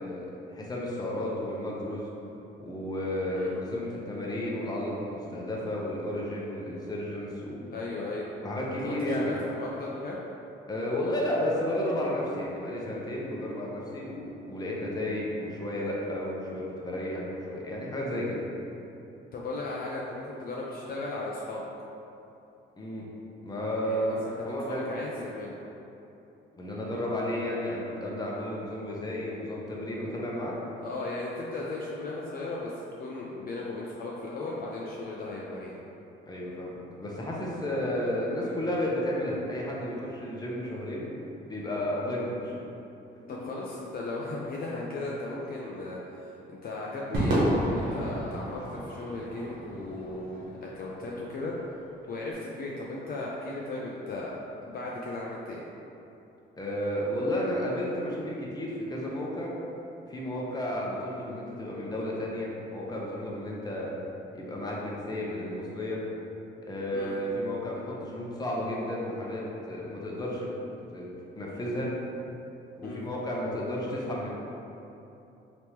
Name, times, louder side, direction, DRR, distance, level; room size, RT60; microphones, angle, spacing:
voice 1, 0.0-2.1 2.6-7.6 8.4-9.3 10.7-18.4 22.8-23.0 23.4-24.9 26.5-30.5 36.2-41.1 41.5-42.5 56.6-59.5 60.1-63.9 64.3-66.0 66.6-70.5 70.9-71.1 71.3-71.9 72.8-74.3, left 1 dB, 20° left, -4 dB, 0.7 m, -32 dB
voice 2, 7.7-8.3 8.8-10.2 19.3-21.6 23.8-25.5 30.8-35.7 43.3-51.5 52.1-54.3 54.6-55.6 66.9-67.1 72.8-73.0, left 2 dB, 50° left, -4 dB, 0.4 m, -36 dB
Crowd / Fireworks, 47.1-51.6, right 1 dB, 90° right, 1.0 m, -31 dB
3.4 x 3.0 x 2.9 m, 2.9 s
cardioid pair, 90°, 20 cm